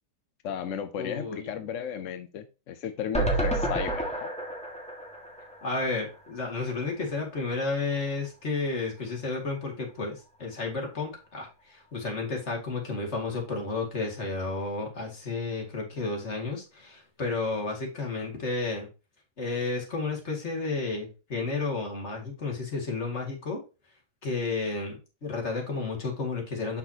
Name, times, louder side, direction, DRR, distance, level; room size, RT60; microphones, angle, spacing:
voice 1, 0.4-4.3, left 8 dB, 65° left, 0.7 m, -35 dB
voice 2, 1.0-1.5 5.6-18.9 19.4-23.6 24.2-26.8, left 3 dB, 40° left, 2.4 m, -32 dB
sound 1, 3.1-6.4 6.7-6.8 7.1-7.2, right 1 dB, 5° left, 1.3 m, -30 dB
7.2 x 5.9 x 2.8 m
omnidirectional pair, 1.9 m